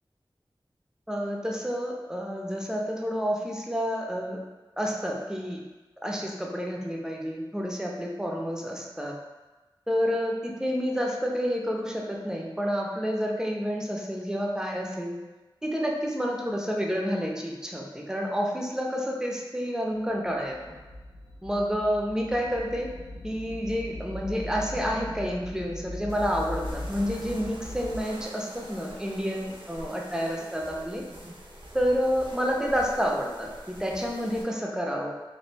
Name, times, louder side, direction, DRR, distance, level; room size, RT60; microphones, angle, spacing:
voice 1, 1.1-4.4 4.8-5.6 6.0-9.2 9.9-15.2 15.6-20.7 21.4-22.9 23.2-31.0 31.7-35.1, equal, 5° right, -1 dB, 0.5 m, -29 dB
sound 1, 20.2-28.0, left 1 dB, 70° left, 0.4 m, -39 dB
sound 2, 26.1-34.4, right 1 dB, 75° right, 0.6 m, -45 dB
3.0 x 2.6 x 3.2 m, 1.2 s
wide cardioid pair, 65°, 9 cm